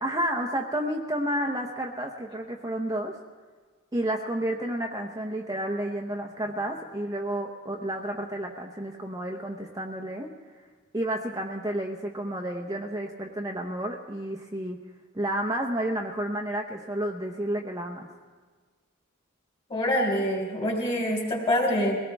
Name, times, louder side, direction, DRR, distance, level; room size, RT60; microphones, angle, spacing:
voice 1, 0.0-3.2 3.9-10.3 10.9-14.8 15.1-18.1, right 1 dB, 15° right, 1 dB, 0.8 m, -31 dB
voice 2, 19.7-22.0, equal, 30° left, 0 dB, 3.5 m, -25 dB
22.5 x 18.0 x 3.5 m, 1.5 s
head